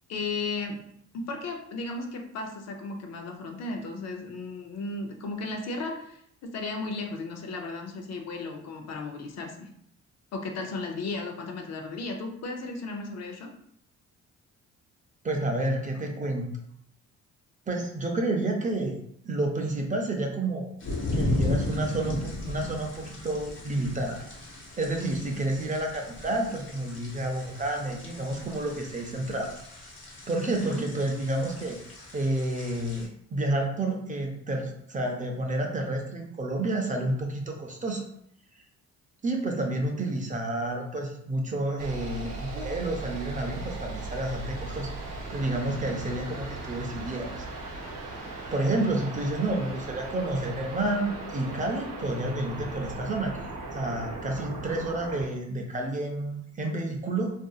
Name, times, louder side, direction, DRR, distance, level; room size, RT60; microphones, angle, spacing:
voice 1, 0.1-0.9 1.1-9.7 10.3-13.5 30.4-30.8, left 3 dB, 60° left, 3 dB, 0.6 m, -35 dB
voice 2, 15.2-16.5 17.7-19.0 19.2-20.7 21.1-24.2 24.8-29.5 30.3-31.8 32.1-38.0 39.2-44.9 45.3-47.4 48.5-57.3, right 2 dB, 25° right, 2 dB, 0.5 m, -30 dB
sound 1, 20.8-33.0, left 1 dB, 40° left, 1.1 m, -36 dB
sound 2, 41.8-55.3, right 2 dB, 60° right, 0.9 m, -38 dB
2.7 x 2.6 x 2.3 m, 0.70 s
cardioid pair, 90°, 30 cm